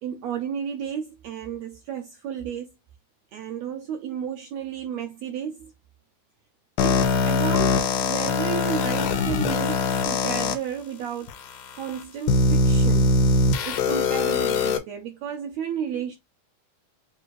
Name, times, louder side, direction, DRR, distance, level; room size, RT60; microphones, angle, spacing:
voice 1, 0.0-2.7 3.3-5.7 6.8-11.3 11.8-13.1 13.4-16.2, right 8 dB, 85° right, 1.5 m, -33 dB
sound 1, 6.8-10.5 11.3-11.4 12.3-14.8, left 3 dB, 80° left, 2.3 m, -22 dB
6.7 x 2.5 x 3.0 m
omnidirectional pair, 3.8 m